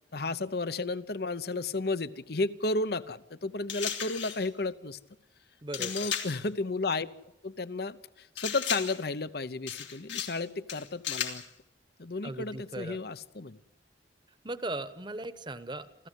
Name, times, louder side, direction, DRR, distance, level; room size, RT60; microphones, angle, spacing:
voice 1, 0.1-5.0 5.8-7.1 7.4-11.4 12.0-13.6, left 3 dB, 60° left, 15 dB, 0.9 m, -33 dB
sound 1, 3.7-4.5 5.7-6.4 8.4-9.1 9.7-10.4 10.7-11.5, left 9 dB, 80° left, 3.1 m, -35 dB
voice 2, 5.6-5.9 12.2-13.0 14.4-16.1, right 2 dB, 25° right, 13 dB, 1.1 m, -38 dB
27.5 x 15.0 x 8.2 m, 0.90 s
head